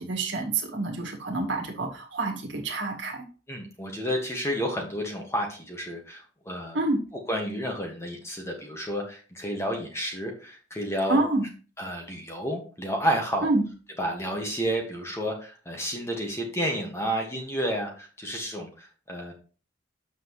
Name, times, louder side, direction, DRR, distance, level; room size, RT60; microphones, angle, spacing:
voice 1, 0.0-3.2 6.7-7.0 11.1-11.5 13.4-13.6, right 2 dB, 70° right, 1 dB, 1.8 m, -27 dB
voice 2, 3.5-6.8 7.3-11.2 11.8-13.5 14.0-19.3, equal, 15° left, 1 dB, 1.6 m, -31 dB
7.8 x 6.0 x 3.1 m, 0.38 s
head